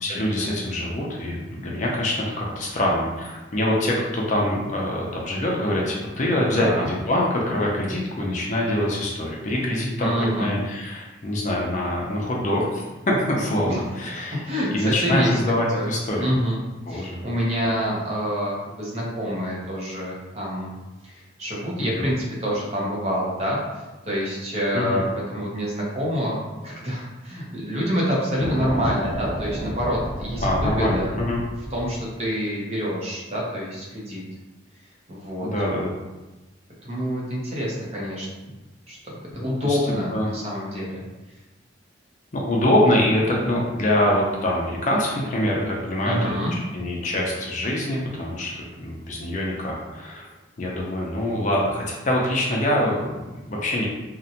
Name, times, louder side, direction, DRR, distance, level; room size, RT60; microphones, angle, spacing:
voice 1, 0.0-10.1 10.4-14.4 14.7-16.3 16.9-17.2 21.8-22.1 24.7-25.0 30.4-31.4 35.4-35.9 39.4-39.8 40.1-40.3 42.3-50.3 50.6-53.9, left 1 dB, 40° left, -3 dB, 0.4 m, -24 dB
voice 2, 6.3-6.9 10.0-10.5 13.6-13.8 14.3-15.3 15.7-15.9 16.2-16.6 16.9-20.7 21.0-23.6 24.1-26.4 26.6-31.2 31.7-34.2 35.1-35.5 36.8-38.3 38.9-41.0 46.0-46.5, equal, 35° right, -4 dB, 0.6 m, -27 dB
sound 1, 28.4-32.1, equal, 10° right, 1.2 m, -30 dB
2.5 x 2.1 x 2.7 m, 1.1 s
head